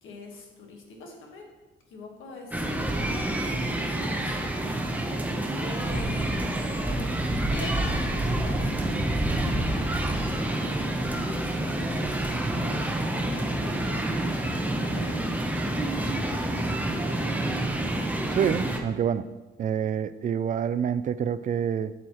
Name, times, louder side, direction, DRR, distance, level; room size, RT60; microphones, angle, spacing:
voice 1, 0.0-1.4 1.9-3.1 3.5-4.8 5.6-7.1 7.5-10.0 10.4-11.2 12.6-16.0 16.3-16.7, left 2 dB, 85° left, 1 dB, 1.5 m, -44 dB
sound 1, 2.5-18.8, right 1 dB, 10° right, 0.8 m, -28 dB
voice 2, 18.3-19.3 19.6-21.9, right 8 dB, 40° right, 14 dB, 0.4 m, -27 dB
7.5 x 7.2 x 3.1 m, 1.2 s
cardioid pair, 90°, 20 cm